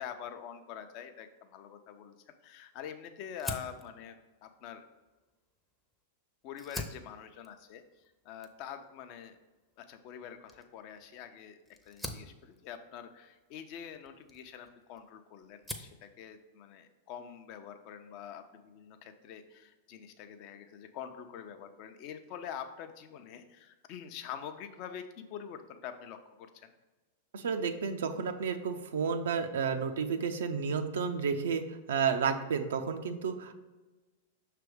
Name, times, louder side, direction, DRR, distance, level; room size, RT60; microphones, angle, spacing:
voice 1, 0.0-2.2 2.4-4.8 6.4-7.8 8.2-9.4 9.8-11.6 11.9-26.7, left 8 dB, 50° left, 8 dB, 0.6 m, -45 dB
Fire, 3.4-6.0 6.4-15.1 15.4-16.0, left 1 dB, 5° left, 0.7 m, -46 dB
voice 2, 27.3-33.5, right 6 dB, 75° right, 6 dB, 0.5 m, -31 dB
6.0 x 3.4 x 4.9 m, 1.2 s
hypercardioid pair, 100°, 0 cm